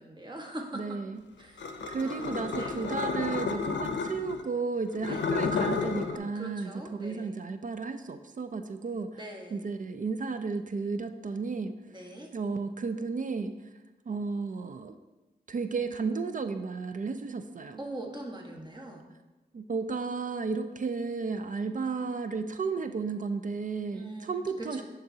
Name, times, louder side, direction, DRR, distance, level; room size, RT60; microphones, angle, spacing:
voice 1, 0.0-1.0 1.4-1.7 2.0-2.9 5.0-5.4 6.3-7.4 9.1-9.7 11.9-12.3 17.8-19.1 23.9-24.8, right 1 dB, 25° right, 0 dB, 1.3 m, -42 dB
voice 2, 0.7-1.2 1.9-9.2 9.5-11.7 12.3-13.5 14.1-15.0 15.5-17.8 19.5-24.8, right 4 dB, 45° right, 9 dB, 0.4 m, -33 dB
sound 1, 1.6-4.4 4.9-6.2, left 4 dB, 80° left, 0.5 m, -31 dB
9.5 x 3.9 x 2.7 m, 1.1 s
cardioid pair, 55°, 18 cm